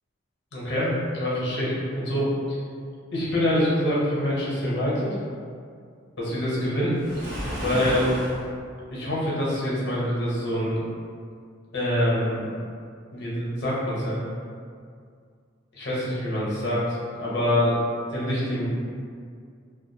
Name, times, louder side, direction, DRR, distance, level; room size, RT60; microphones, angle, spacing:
voice 1, 0.5-2.6 3.1-5.2 6.2-7.2 7.6-8.1 8.9-10.8 11.7-12.4 13.1-14.2 15.7-17.8 18.1-18.7, left 1 dB, 60° left, -7 dB, 0.8 m, -25 dB
Waves surf, 6.9-8.4, equal, 60° right, 0.6 m, -31 dB
2.4 x 2.3 x 2.7 m, 2.2 s
head